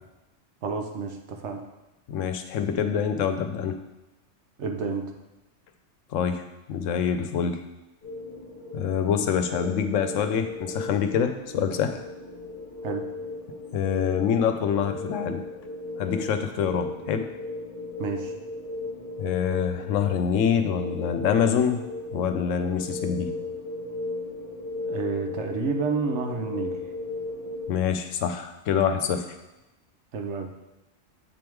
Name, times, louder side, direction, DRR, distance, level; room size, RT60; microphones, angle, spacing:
voice 1, 0.6-1.6 4.6-5.1 12.8-13.0 18.0-18.3 24.9-26.8 30.1-30.5, right 4 dB, 70° right, 4 dB, 1.1 m, -30 dB
voice 2, 2.1-3.8 6.1-6.4 6.7-7.6 8.7-12.0 13.7-15.4 16.0-17.3 19.2-21.8 22.1-23.3 27.7-29.4, left 7 dB, 85° left, 8 dB, 1.0 m, -25 dB
sound 1, 8.0-27.7, left 2 dB, 50° left, 1.2 m, -36 dB
7.5 x 3.5 x 4.6 m, 0.99 s
omnidirectional pair, 1.3 m